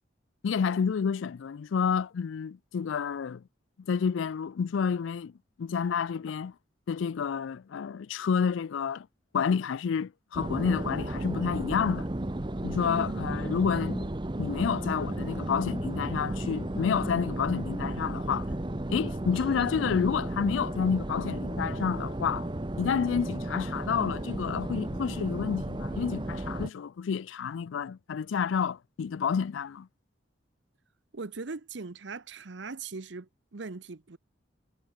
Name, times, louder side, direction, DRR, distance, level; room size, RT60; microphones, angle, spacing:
voice 1, 0.4-3.4 3.9-5.3 5.6-6.5 6.9-9.1 9.3-12.1 12.6-14.1 14.4-18.5 18.9-22.5 22.8-29.9, left 6 dB, 85° left, 0.4 m, -29 dB
sound 1, 10.3-26.7, right 1 dB, 25° right, 0.8 m, -34 dB
voice 2, 12.8-13.2 31.1-34.2, right 4 dB, 70° right, 0.8 m, -40 dB
head